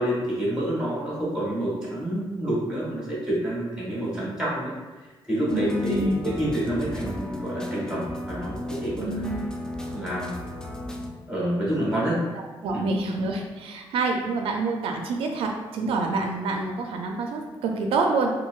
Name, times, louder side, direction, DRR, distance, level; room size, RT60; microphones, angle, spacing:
voice 1, 0.0-4.7 5.3-9.3 9.9-10.4 11.3-12.2 12.7-12.8, right 1 dB, 10° right, -6 dB, 1.3 m, -28 dB
sound 1, 5.5-11.1, left 1 dB, 5° left, 0.3 m, -35 dB
voice 2, 5.5-6.2 9.0-9.4 12.3-18.3, right 3 dB, 80° right, 2 dB, 0.4 m, -27 dB
3.9 x 2.2 x 2.3 m, 1.3 s
cardioid pair, 120°, 9 cm